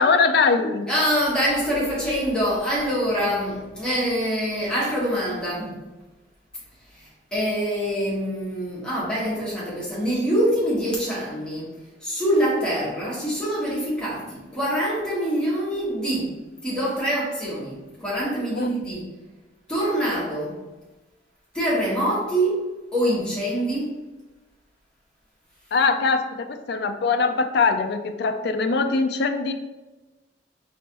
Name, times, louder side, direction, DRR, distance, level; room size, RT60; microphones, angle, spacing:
voice 1, 0.0-0.9 18.5-18.7 25.7-29.5, left 4 dB, 65° left, 7 dB, 0.4 m, -22 dB
voice 2, 0.9-5.8 6.9-19.1 19.7-20.6 21.5-22.6 22.9-24.0, equal, 5° left, -7 dB, 1.5 m, -25 dB
5.3 x 3.2 x 2.9 m, 1.1 s
head